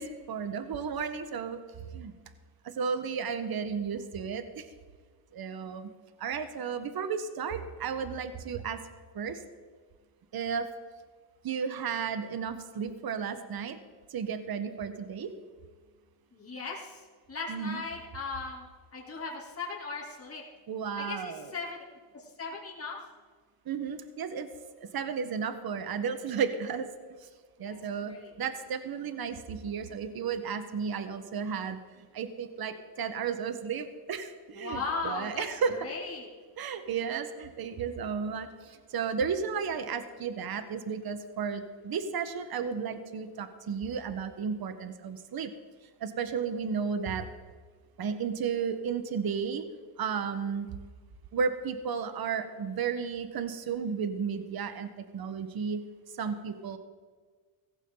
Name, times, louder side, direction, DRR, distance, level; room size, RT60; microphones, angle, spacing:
voice 1, 0.0-1.6 1.9-2.1 2.8-4.6 5.3-5.9 6.2-8.8 9.1-9.4 10.3-10.7 11.4-13.8 14.1-15.3 17.5-17.8 20.7-21.5 23.7-24.5 24.9-26.9 27.6-31.8 32.1-35.9 36.6-38.5 38.9-45.5 46.0-47.3 48.0-49.7 50.0-50.7 51.3-55.8 56.2-56.8, right 6 dB, 45° right, 10 dB, 1.4 m, -33 dB
voice 2, 16.3-18.6 18.9-20.4 21.0-21.8 22.1-23.0 27.6-28.3 34.5-36.3, left 4 dB, 30° left, -4 dB, 3.0 m, -38 dB
16.5 x 14.5 x 3.9 m, 1.5 s
cardioid pair, 90°, 49 cm